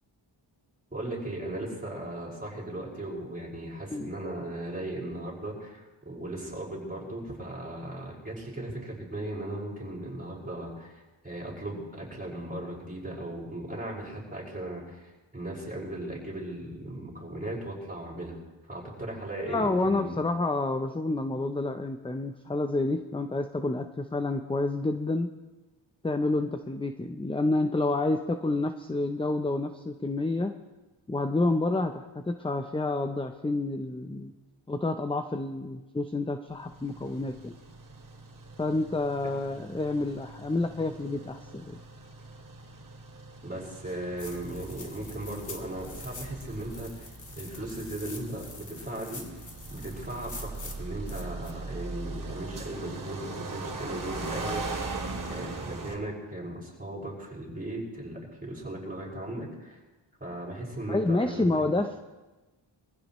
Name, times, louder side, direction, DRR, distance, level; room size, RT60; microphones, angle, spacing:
voice 1, 0.9-18.4 18.7-20.2 43.4-47.1 47.4-49.2 49.7-54.9 55.3-59.8 60.2-61.7, right 1 dB, 15° right, -3 dB, 5.7 m, -37 dB
voice 2, 19.5-25.3 26.0-30.5 31.1-34.3 34.7-37.6 38.6-41.8 60.9-62.0, left 2 dB, 10° left, 7 dB, 0.7 m, -29 dB
sound 1, 36.5-56.0, right 3 dB, 40° right, 2.5 m, -40 dB
sound 2, 44.2-51.5, left 2 dB, 40° left, 2.2 m, -45 dB
23.0 x 15.5 x 3.1 m, 1.1 s
wide cardioid pair, 85°, 47 cm